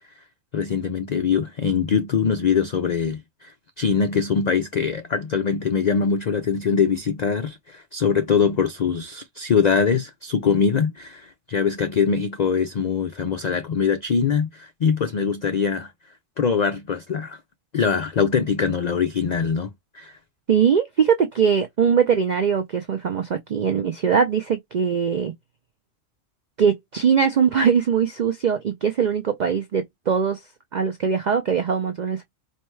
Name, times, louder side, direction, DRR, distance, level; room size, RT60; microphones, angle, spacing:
voice 1, 0.5-15.9 16.4-17.4 17.7-20.2, left 6 dB, 75° left, 0.3 m, -23 dB
voice 2, 20.5-25.3 26.6-30.4 30.7-32.2, right 7 dB, 70° right, 0.4 m, -21 dB
4.4 x 2.8 x 3.1 m
omnidirectional pair, 1.3 m